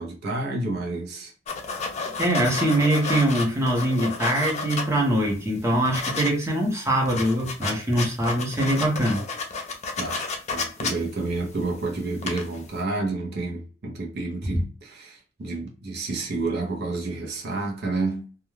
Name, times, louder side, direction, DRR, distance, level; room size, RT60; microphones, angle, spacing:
voice 1, 0.0-1.3 10.0-18.3, right 3 dB, 55° right, 0.6 m, -30 dB
sound 1, 1.5-5.2 5.6-6.3 6.6-6.7 6.9-11.8 12.1-12.6, left 4 dB, 35° left, 0.5 m, -31 dB
voice 2, 2.2-9.2, right 1 dB, 15° right, 0.8 m, -23 dB
2.2 x 2.2 x 3.1 m
head